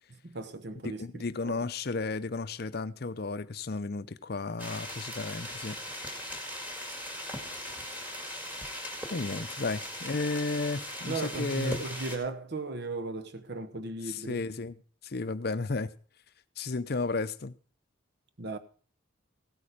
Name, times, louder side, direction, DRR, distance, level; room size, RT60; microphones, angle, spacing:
voice 1, 0.1-1.6 11.1-14.4 18.4-18.6, right 3 dB, 50° right, 1.0 m, -36 dB
voice 2, 0.8-5.8 9.1-11.8 14.1-14.8 15.0-15.9 16.6-17.5, left 3 dB, 50° left, 0.6 m, -33 dB
sound 1, 4.6-12.2, equal, 10° right, 2.1 m, -39 dB
16.0 x 8.6 x 5.0 m
head